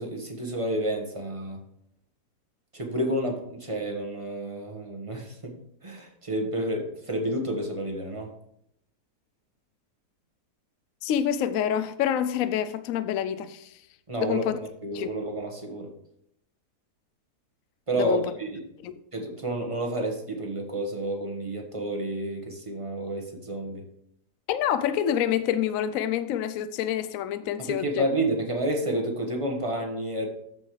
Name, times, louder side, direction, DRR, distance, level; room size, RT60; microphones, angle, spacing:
voice 1, 0.0-1.6 2.7-5.5 5.8-8.3 14.1-15.9 17.9-18.6 19.1-23.8 27.6-30.3, right 1 dB, 20° right, 1.4 m, -30 dB
voice 2, 11.0-13.7 14.2-14.6 14.9-15.1 17.9-18.3 18.8-19.0 24.5-28.1, left 10 dB, 70° left, 0.9 m, -27 dB
13.5 x 5.3 x 3.2 m
omnidirectional pair, 1.7 m